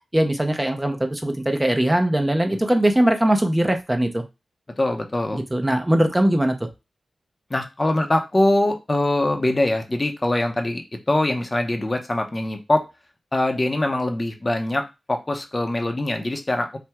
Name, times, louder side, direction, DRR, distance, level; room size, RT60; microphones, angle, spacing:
voice 1, 0.1-4.2 5.3-6.6, right 1 dB, 15° right, 5 dB, 0.7 m, -20 dB
voice 2, 4.8-5.4 7.5-10.8 11.1-12.9 13.3-16.8, left 1 dB, 30° left, 4 dB, 0.7 m, -23 dB
5.7 x 2.2 x 3.5 m, 0.25 s
wide cardioid pair, 85°, 0 cm